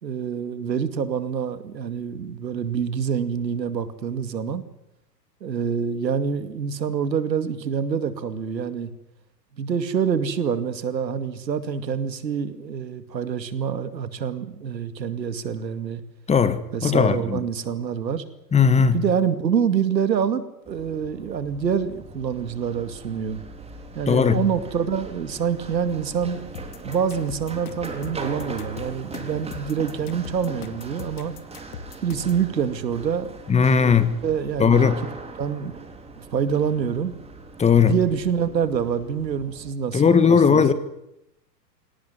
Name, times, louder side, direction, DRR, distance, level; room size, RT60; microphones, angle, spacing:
voice 1, 0.0-4.6 5.4-8.9 9.6-16.0 16.7-18.2 18.9-23.4 23.9-26.4 26.8-31.3 32.0-33.3 33.8-33.9 34.2-34.9 35.4-35.8 36.2-37.2 37.8-40.6, right 7 dB, 85° right, 2.4 m, -26 dB
voice 2, 16.3-17.5 18.5-19.0 24.1-24.4 33.5-34.2 34.6-35.0 37.6-37.9 39.9-40.7, left 6 dB, 15° left, 1.5 m, -18 dB
Run, 20.6-39.7, right 3 dB, 10° right, 3.4 m, -40 dB
sound 1, 26.5-32.5, left 9 dB, 60° left, 2.3 m, -40 dB
25.0 x 18.0 x 9.6 m
hypercardioid pair, 115°, 49 cm